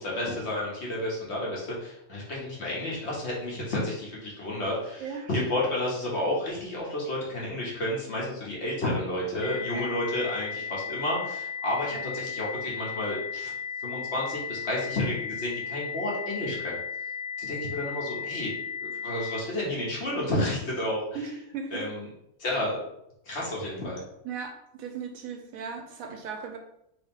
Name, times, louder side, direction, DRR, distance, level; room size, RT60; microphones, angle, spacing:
voice 1, 0.0-13.5 13.8-16.8 17.4-18.5 18.8-21.0 21.7-22.1 22.4-22.8 23.3-24.0, left 1 dB, 50° left, -4 dB, 1.2 m, -31 dB
sound 1, 9.4-19.4, left 7 dB, 80° left, 1.1 m, -35 dB
voice 2, 21.1-21.9 24.2-26.6, right 5 dB, 75° right, 4 dB, 1.0 m, -37 dB
3.5 x 2.9 x 3.6 m, 0.80 s
omnidirectional pair, 1.6 m